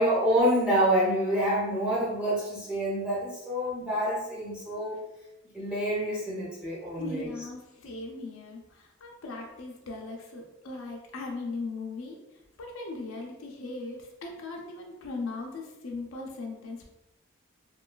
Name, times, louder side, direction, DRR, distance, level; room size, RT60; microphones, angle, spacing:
voice 1, 0.0-5.0 5.5-7.3, equal, 5° right, -8 dB, 0.8 m, -27 dB
voice 2, 7.0-12.2 12.6-16.8, left 3 dB, 85° left, 0 dB, 0.5 m, -38 dB
3.1 x 2.2 x 2.2 m, 0.96 s
head